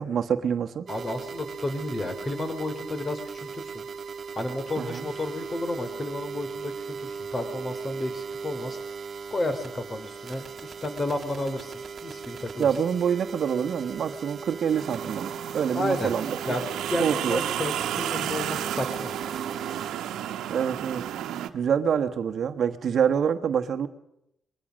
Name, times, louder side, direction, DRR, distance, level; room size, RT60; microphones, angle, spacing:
voice 1, 0.0-0.9 4.8-5.1 12.6-16.6 17.0-17.4 20.5-21.1 21.5-23.9, right 8 dB, 60° right, 6 dB, 1.2 m, -26 dB
voice 2, 0.9-3.8 4.3-8.8 9.3-12.7 15.7-16.1 16.4-19.2, left 1 dB, 25° left, 9 dB, 3.2 m, -32 dB
sound 1, 0.9-19.9, right 5 dB, 45° right, 1.8 m, -38 dB
sound 2, 14.7-21.5, right 11 dB, 85° right, 1.2 m, -32 dB
23.0 x 21.5 x 6.4 m, 0.81 s
cardioid pair, 95°, 0 cm